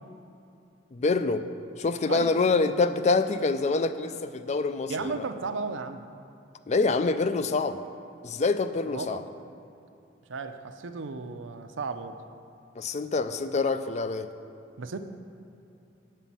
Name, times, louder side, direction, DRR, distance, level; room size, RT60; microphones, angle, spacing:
voice 1, 0.9-1.4 1.8-5.2 6.7-7.8 8.2-9.2 12.8-14.3, left 3 dB, 35° left, 11 dB, 0.4 m, -26 dB
voice 2, 4.9-6.1 8.8-9.2 10.3-12.2 14.8-15.0, right 4 dB, 80° right, 9 dB, 0.6 m, -34 dB
9.1 x 5.6 x 7.4 m, 2.7 s
head